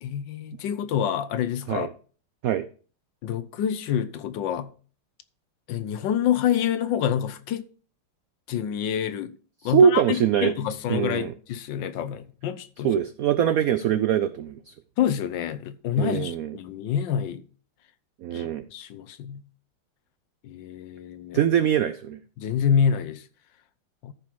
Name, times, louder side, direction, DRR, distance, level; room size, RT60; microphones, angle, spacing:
voice 1, 0.0-1.9 3.2-4.7 5.7-7.7 8.5-9.4 9.6-10.0 10.4-12.9 15.0-17.4 18.3-19.4 20.4-21.4 22.4-23.3 24.0-24.1, left 9 dB, 70° left, 1.3 m, -27 dB
voice 2, 9.6-10.5 10.9-11.3 12.8-14.7 16.0-16.5 18.2-18.6 21.3-22.2, right 8 dB, 90° right, 0.7 m, -22 dB
13.5 x 5.3 x 4.5 m
omnidirectional pair, 2.2 m